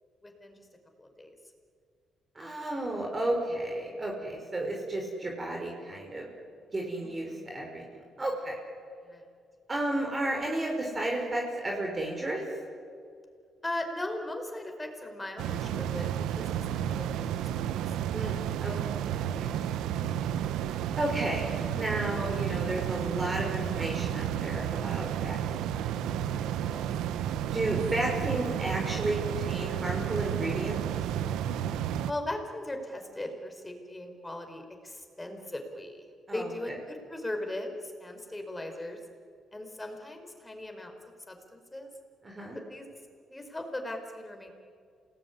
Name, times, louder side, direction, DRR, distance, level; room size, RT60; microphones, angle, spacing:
voice 1, 0.2-0.6 1.0-1.4 7.0-7.5 9.0-9.2 13.6-17.5 19.6-19.9 26.3-26.6 27.5-27.6 32.1-36.1 36.3-39.0 39.5-41.0 41.3-41.9 42.7-42.9 43.3-44.5, left 1 dB, 15° left, 5 dB, 4.8 m, -38 dB
voice 2, 2.4-6.3 6.7-8.6 9.7-12.4 18.1-18.7 19.3-19.5 20.9-26.8 27.5-30.8 36.3-36.5 42.2-42.6, right 1 dB, 25° right, 0 dB, 5.6 m, -33 dB
sound 1, 15.4-32.1, right 10 dB, 90° right, 0.9 m, -32 dB
28.5 x 19.0 x 9.8 m, 2.2 s
cardioid pair, 90°, 0 cm